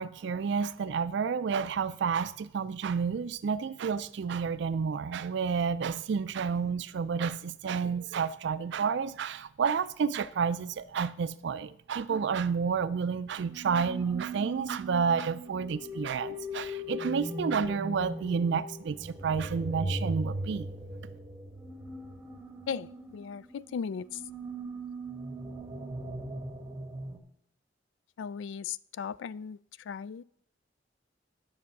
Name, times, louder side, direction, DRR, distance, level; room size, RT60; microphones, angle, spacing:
voice 1, 0.0-20.7, right 6 dB, 65° right, 0.4 m, -30 dB
sound 1, 13.4-27.2, right 1 dB, 15° right, 1.1 m, -39 dB
voice 2, 22.7-24.1 28.2-29.6 29.9-30.2, left 6 dB, 80° left, 0.3 m, -37 dB
10.0 x 6.1 x 5.9 m
head